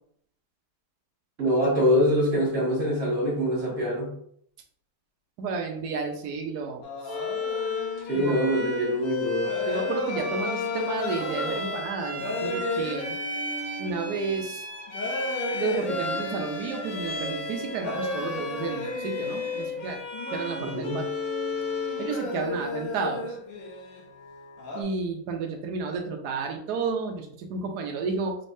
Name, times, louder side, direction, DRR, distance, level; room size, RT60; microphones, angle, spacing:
voice 1, 1.4-4.1 8.1-9.5 20.6-21.0, equal, 40° right, -5 dB, 1.8 m, -24 dB
voice 2, 5.4-6.8 8.1-8.3 9.7-13.2 13.8-14.6 15.5-20.0 20.3-21.1 22.0-23.4 24.7-28.4, right 4 dB, 70° right, 3 dB, 0.9 m, -32 dB
sound 1, 6.8-24.8, left 2 dB, 75° left, 1.6 m, -34 dB
Bowed string instrument, 7.1-22.3, left 3 dB, 50° left, 1.5 m, -34 dB
4.2 x 3.3 x 2.7 m, 0.65 s
omnidirectional pair, 2.4 m